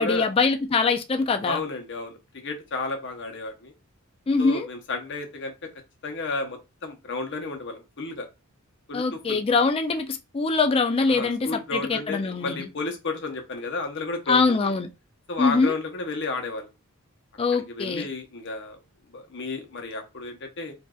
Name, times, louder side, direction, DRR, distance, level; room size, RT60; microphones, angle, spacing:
voice 1, 0.0-1.6 4.3-4.7 8.9-12.7 14.3-14.9 15.4-15.7 17.4-18.1, left 4 dB, 25° left, 0.3 m, -23 dB
voice 2, 1.4-3.7 4.4-5.5 6.0-8.3 8.9-9.4 11.1-14.7 15.3-16.7 17.5-18.8 19.1-20.7, left 3 dB, 55° left, 0.9 m, -32 dB
4.8 x 2.6 x 2.3 m
head